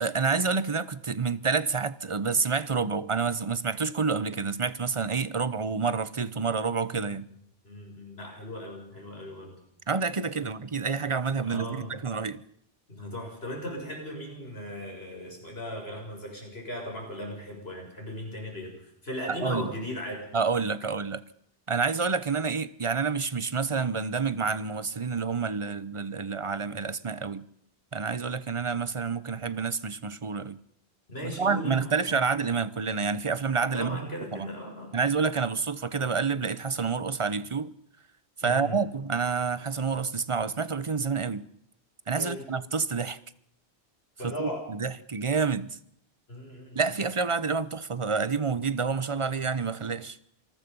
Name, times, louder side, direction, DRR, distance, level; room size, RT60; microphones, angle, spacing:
voice 1, 0.0-7.2 9.9-12.4 19.3-19.7 20.3-21.2 21.7-27.4 27.9-30.6 31.2-34.0 34.3-34.5 34.9-37.7 38.4-41.5 42.1-43.2 44.2-45.7 46.7-50.2, right 5 dB, 30° right, 0.9 m, -28 dB
voice 2, 7.6-9.6 10.4-10.5 11.4-12.0 12.9-20.3 31.1-32.3 33.7-35.1 38.4-38.8 42.2-42.5 44.2-44.6 46.3-46.8, equal, 70° left, 7.1 m, -38 dB
27.0 x 19.5 x 5.5 m
omnidirectional pair, 1.1 m